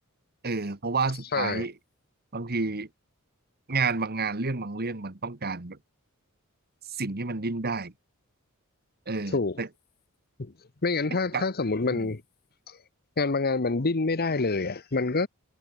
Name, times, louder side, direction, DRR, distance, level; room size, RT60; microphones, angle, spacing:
voice 1, 0.4-1.7 2.3-2.9 3.7-5.8 7.0-7.9 9.1-9.7 11.3-11.4 11.9-12.1, right 4 dB, 45° right, 1.7 m, -30 dB
voice 2, 1.3-1.6 9.3-9.6 10.4-10.5 10.8-12.2 12.7-12.8 13.2-15.3, left 3 dB, 45° left, 1.0 m, -27 dB
head